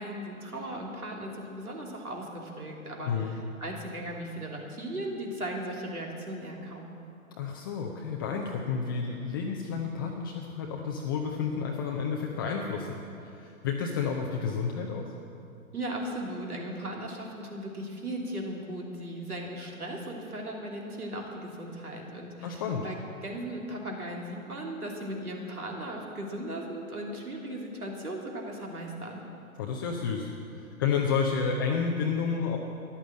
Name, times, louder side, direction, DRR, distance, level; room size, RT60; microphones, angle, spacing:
voice 1, 0.0-6.9 15.7-29.2, right 1 dB, 75° right, -1 dB, 3.2 m, -37 dB
voice 2, 7.4-13.0 13.3-15.1 22.4-22.9 29.6-32.6, left 6 dB, 15° left, 0 dB, 0.5 m, -30 dB
14.0 x 11.0 x 7.5 m, 2.7 s
figure-of-eight pair, 120°, 44 cm